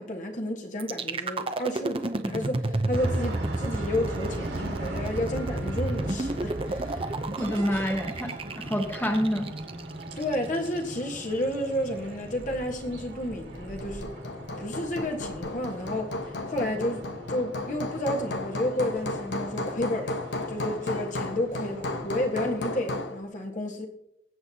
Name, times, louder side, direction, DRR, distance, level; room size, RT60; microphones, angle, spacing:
voice 1, 0.0-7.1 10.2-14.1 14.6-20.2 20.5-23.9, left 1 dB, 45° left, 1.4 m, -31 dB
sound 1, 0.8-10.8, right 2 dB, 30° right, 0.7 m, -31 dB
sound 2, 2.9-22.7, right 1 dB, 65° right, 2.4 m, -40 dB
voice 2, 7.4-9.5, equal, 10° left, 1.1 m, -27 dB
Hammer, 13.6-23.2, left 2 dB, 80° left, 1.0 m, -34 dB
21.5 x 8.0 x 2.9 m
head